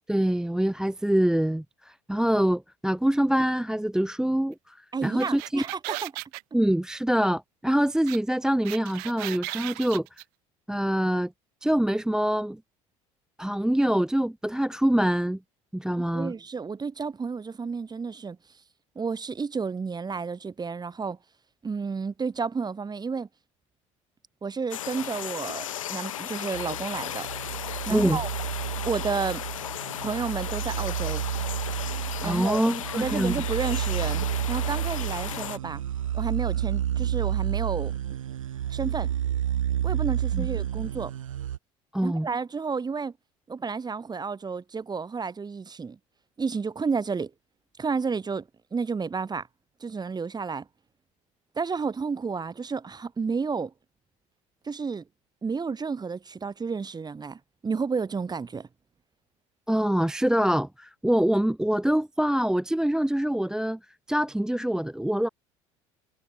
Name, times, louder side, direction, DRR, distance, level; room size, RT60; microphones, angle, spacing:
voice 1, 0.1-5.6 6.5-10.1 10.7-11.3 11.6-12.6 13.4-15.4 15.7-16.3 27.9-28.2 32.2-33.4 40.3-40.5 41.9-42.3 59.7-63.8 64.1-65.3, right 1 dB, 5° right, 0.6 m, -25 dB
voice 2, 4.9-5.7 6.0-6.1 16.0-18.4 18.9-21.2 21.6-23.3 24.4-27.3 27.9-28.3 28.8-29.4 30.0-31.2 32.2-32.6 32.9-35.8 36.1-37.9 38.7-39.1 39.8-41.1 42.0-43.1 43.5-46.0 46.4-47.3 47.8-48.5 48.7-49.5 49.8-50.6 51.5-53.7 54.6-55.0 55.4-58.7, right 5 dB, 25° right, 1.6 m, -31 dB
sound 1, 5.0-6.4 8.1-8.2 8.4-10.2, right 30 dB, 65° right, 2.4 m, -36 dB
sound 2, 24.7-35.6, left 12 dB, 85° left, 0.9 m, -35 dB
sound 3, 26.5-41.6, right 10 dB, 85° right, 3.2 m, -30 dB
hypercardioid pair, 65°, 17 cm